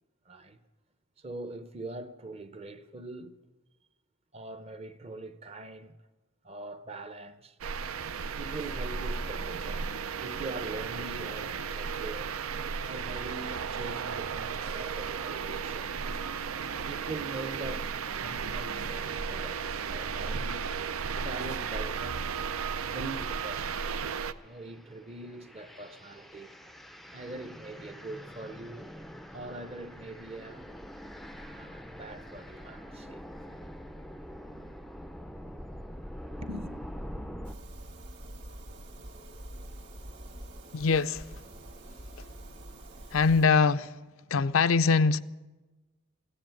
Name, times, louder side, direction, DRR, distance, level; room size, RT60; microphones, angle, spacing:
voice 1, 0.3-0.6 1.2-3.4 4.3-6.0 6.4-7.6 8.3-9.9 10.2-12.3 12.9-16.2 16.9-20.6 21.1-22.5 22.8-26.6 27.1-28.9 29.3-30.7 31.3-33.2 36.4-36.8, right 2 dB, 30° right, 0.7 m, -43 dB
sound 1, 7.6-24.3, right 6 dB, 85° right, 0.5 m, -34 dB
sound 2, 22.5-22.6 23.1-37.5, equal, ahead, 0.4 m, -45 dB
sound 3, 37.4-43.5, right 1 dB, 50° right, 2.0 m, -45 dB
voice 2, 40.7-41.3 43.1-43.9 44.3-45.2, left 5 dB, 75° left, 0.5 m, -23 dB
16.0 x 10.0 x 9.0 m
head